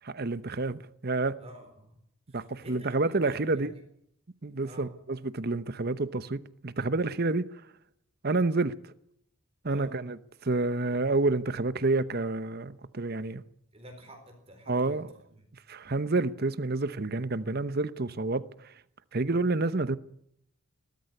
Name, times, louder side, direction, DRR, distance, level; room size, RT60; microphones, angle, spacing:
voice 1, 0.0-1.4 2.3-3.7 4.4-7.5 8.2-8.7 9.6-13.4 14.7-15.1 15.7-18.4 19.1-20.0, right 3 dB, 45° right, 0.9 m, -29 dB
voice 2, 1.4-2.0 2.3-3.8 4.6-4.9 9.7-9.9 13.7-15.5, equal, 25° right, 4.2 m, -49 dB
20.5 x 13.5 x 9.7 m
head